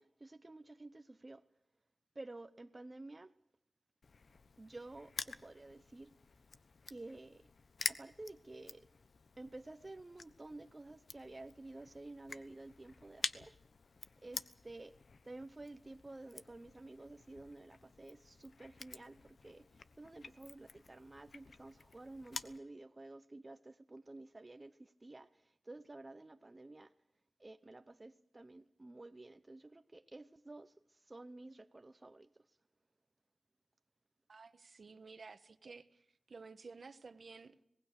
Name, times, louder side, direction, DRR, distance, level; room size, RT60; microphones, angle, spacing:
voice 1, 0.0-1.5 2.1-3.3 4.6-6.1 6.9-7.5 7.8-8.9 9.4-13.6 14.2-15.0 15.2-26.9 27.4-32.5, right 2 dB, 35° right, 1.0 m, -52 dB
Crushing, 4.0-22.6, left 4 dB, 70° left, 1.1 m, -49 dB
voice 2, 34.3-36.0 36.3-37.6, right 4 dB, 70° right, 1.3 m, -53 dB
25.5 x 19.5 x 6.7 m
cardioid pair, 50°, 0 cm